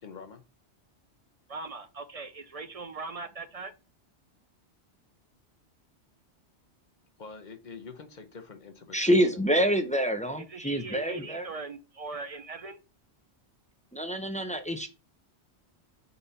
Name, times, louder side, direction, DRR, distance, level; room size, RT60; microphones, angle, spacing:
voice 1, 0.0-0.4 7.2-9.4, left 5 dB, 45° left, 6 dB, 1.0 m, -45 dB
voice 2, 1.5-3.7 10.4-12.8, right 4 dB, 45° right, 10 dB, 0.5 m, -40 dB
voice 3, 8.9-11.5 13.9-14.9, equal, 10° left, 7 dB, 0.5 m, -26 dB
5.8 x 4.1 x 4.0 m, 0.31 s
omnidirectional pair, 1.1 m